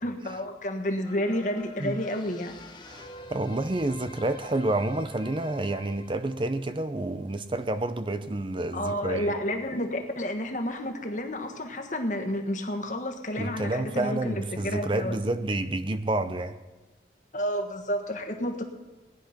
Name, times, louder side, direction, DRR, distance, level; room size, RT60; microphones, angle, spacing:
voice 1, 0.0-2.6 8.7-15.2 17.3-18.6, left 1 dB, 45° left, 1.5 m, -30 dB
sound 1, 1.0-7.7 8.1-8.2, left 2 dB, 25° left, 1.2 m, -48 dB
voice 2, 2.9-9.3 13.4-16.6, right 2 dB, 30° right, 0.6 m, -29 dB
18.0 x 10.5 x 5.9 m
head